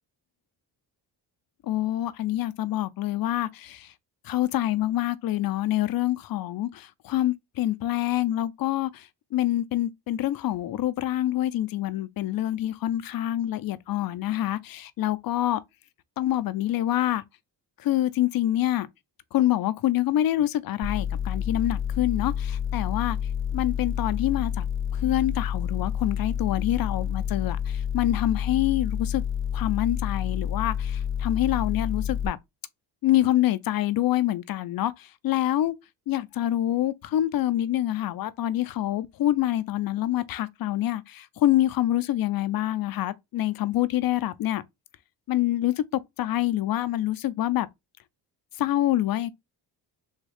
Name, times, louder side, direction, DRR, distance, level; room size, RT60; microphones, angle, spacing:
voice 1, 1.6-3.9 4.2-15.6 16.2-17.2 17.8-18.9 19.3-23.2 23.5-24.7 24.9-29.2 29.5-32.4 33.0-35.7 36.1-44.6 45.3-45.8 46.2-47.7 48.6-49.3, left 13 dB, 50° left, 0.4 m, -26 dB
sound 1, 20.8-32.3, left 8 dB, 25° right, 0.8 m, -29 dB
3.5 x 2.3 x 3.3 m
cardioid pair, 90°, 46 cm